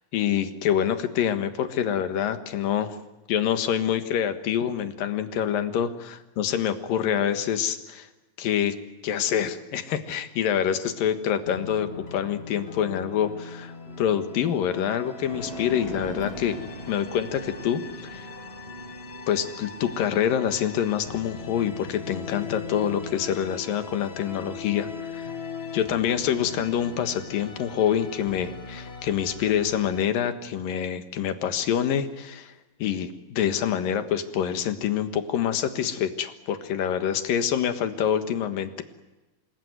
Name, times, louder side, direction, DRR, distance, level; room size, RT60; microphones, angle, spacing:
voice 1, 0.1-3.0 3.3-8.1 8.4-8.7 9.0-16.6 16.9-18.3 19.3-25.3 25.7-32.5 32.8-38.8, left 9 dB, 75° left, 9 dB, 3.2 m, -26 dB
sound 1, 11.5-30.0, left 4 dB, 45° left, 0.7 m, -40 dB
sound 2, 15.3-25.1, right 1 dB, 50° right, 8.5 m, -44 dB
27.5 x 21.0 x 9.6 m, 1.1 s
omnidirectional pair, 4.2 m